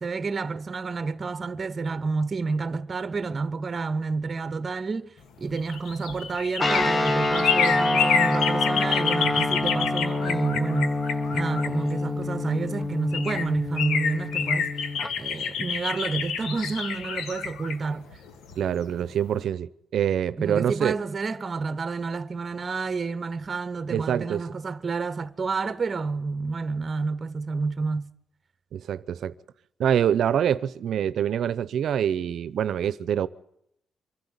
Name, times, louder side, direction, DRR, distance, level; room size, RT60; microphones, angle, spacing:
voice 1, 0.0-11.0 11.3-14.7 15.2-18.1 20.4-28.1, right 4 dB, 35° right, 1.0 m, -29 dB
sound 1, 5.4-12.3 12.8-12.9 13.1-18.9 19.2-19.3, left 7 dB, 90° left, 1.9 m, -28 dB
Guitar, 6.6-15.1, left 2 dB, 20° left, 1.4 m, -27 dB
voice 2, 18.6-20.9 23.9-24.4 28.7-29.3 29.8-33.3, right 9 dB, 70° right, 0.7 m, -25 dB
24.5 x 12.0 x 9.7 m
cardioid pair, 100°, 0 cm